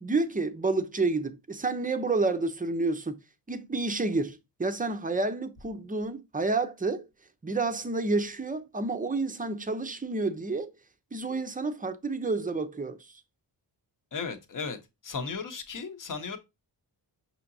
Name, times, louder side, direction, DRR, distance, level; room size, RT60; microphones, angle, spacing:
voice 1, 0.0-3.2 3.5-7.0 7.4-10.7 11.1-13.0, right 3 dB, 20° right, 0.5 m, -29 dB
voice 2, 14.1-14.8 15.0-16.4, left 5 dB, 50° left, 0.8 m, -35 dB
5.8 x 2.8 x 2.6 m
wide cardioid pair, 95°, 42 cm